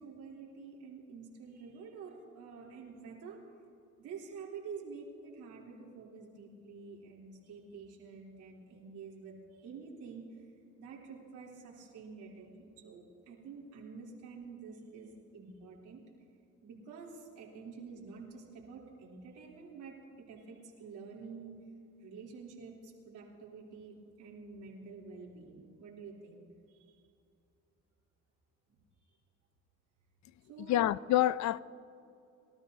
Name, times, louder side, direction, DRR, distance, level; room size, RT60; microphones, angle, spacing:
voice 1, 0.0-3.4 4.0-10.4 10.8-16.0 16.6-21.6 22.0-26.4 26.9-27.0 28.7-28.8 30.5-30.8, right 5 dB, 90° right, 3.5 m, -48 dB
voice 2, 30.7-31.6, left 13 dB, 65° left, 0.5 m, -27 dB
25.0 x 13.5 x 2.8 m
cardioid pair, 90°, 30 cm